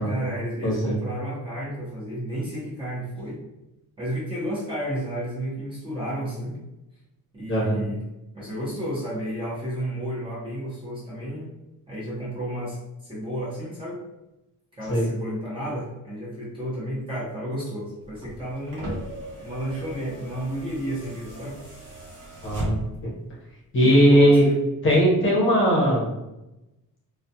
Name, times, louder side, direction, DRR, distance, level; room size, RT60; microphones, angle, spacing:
voice 1, 0.0-3.4 4.0-6.6 7.3-8.0 8.3-11.5 11.9-14.0 14.7-18.9 19.4-21.6 23.8-24.6, equal, 15° right, -8 dB, 0.7 m, -32 dB
voice 2, 0.6-0.9 7.5-7.8 14.9-15.1 22.4-22.8 23.7-24.4 24.8-26.1, equal, 35° left, -4 dB, 0.7 m, -19 dB
sound 1, 18.0-23.1 24.4-24.5, right 1 dB, 40° right, 0.9 m, -36 dB
2.3 x 2.2 x 2.7 m, 0.93 s
cardioid pair, 175°, 35 cm